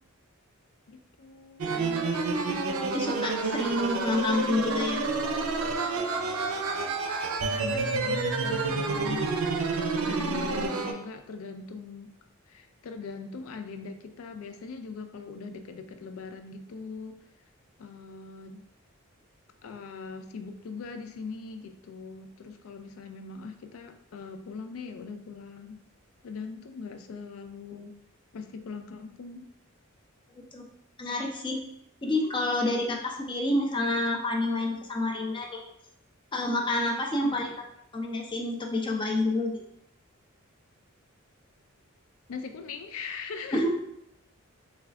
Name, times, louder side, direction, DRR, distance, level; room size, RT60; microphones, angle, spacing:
voice 1, 0.9-1.7 7.5-9.3 10.0-12.1 12.5-17.2 17.8-18.6 19.6-25.8 26.2-27.9 28.3-29.5 37.2-37.5 42.3-43.6, left 4 dB, 80° left, 7 dB, 0.4 m, -41 dB
voice 2, 1.6-2.1 2.9-5.0 30.3-30.7 31.0-31.6 32.0-35.6 36.3-37.5 37.9-39.6 43.5-43.7, left 2 dB, 25° left, 1 dB, 0.5 m, -28 dB
sound 1, 1.6-10.9, right 3 dB, 85° right, 0.5 m, -29 dB
3.5 x 2.3 x 3.3 m, 0.77 s
head